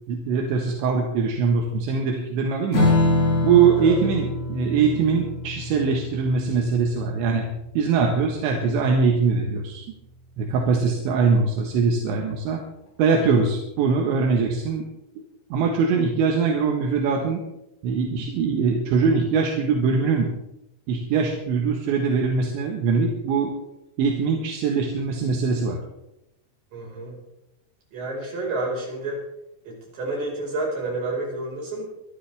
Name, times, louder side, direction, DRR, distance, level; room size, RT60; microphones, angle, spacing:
voice 1, 0.1-2.9 3.4-7.5 7.8-9.8 10.4-12.6 13.0-14.9 15.5-17.4 17.8-20.3 20.9-23.5 24.0-25.8, right 5 dB, 80° right, 1 dB, 3.8 m, -22 dB
Strum, 2.7-9.6, left 2 dB, 65° left, 6.2 m, -26 dB
voice 2, 26.7-27.2 27.9-29.2 29.6-31.8, right 2 dB, 50° right, -2 dB, 6.7 m, -29 dB
25.0 x 11.5 x 3.5 m, 0.86 s
omnidirectional pair, 5.2 m